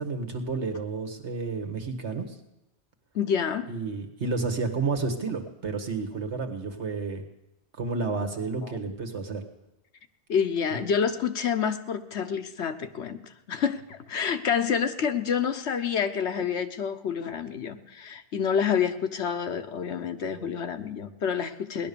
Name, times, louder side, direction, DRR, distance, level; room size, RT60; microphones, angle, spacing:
voice 1, 0.0-2.4 3.7-7.2 7.8-9.4 10.7-10.8, right 4 dB, 80° right, 5 dB, 1.9 m, -31 dB
voice 2, 3.1-3.7 8.6-8.8 10.3-13.2 13.5-21.9, left 7 dB, 75° left, 9 dB, 1.2 m, -28 dB
18.0 x 11.0 x 6.9 m, 0.94 s
omnidirectional pair, 1.1 m